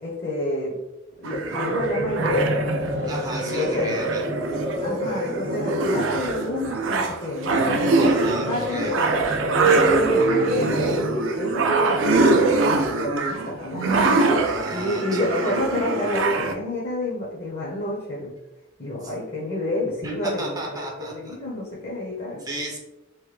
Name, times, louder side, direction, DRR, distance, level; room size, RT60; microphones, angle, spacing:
voice 1, 0.0-0.8 1.2-2.7 3.4-3.9 4.8-9.2 9.7-14.1 14.7-18.3 18.8-22.4, left 1 dB, 35° left, -4 dB, 0.6 m, -29 dB
sound 1, 1.2-16.5, right 3 dB, 85° right, 0.4 m, -24 dB
sound 2, 1.3-12.7, right 1 dB, 60° right, 0.7 m, -27 dB
voice 2, 3.1-4.2 8.0-9.2 14.4-15.4 19.0-19.1 20.0-21.3 22.4-22.8, right 1 dB, 20° right, -1 dB, 0.4 m, -33 dB
3.1 x 2.1 x 3.1 m, 0.99 s
head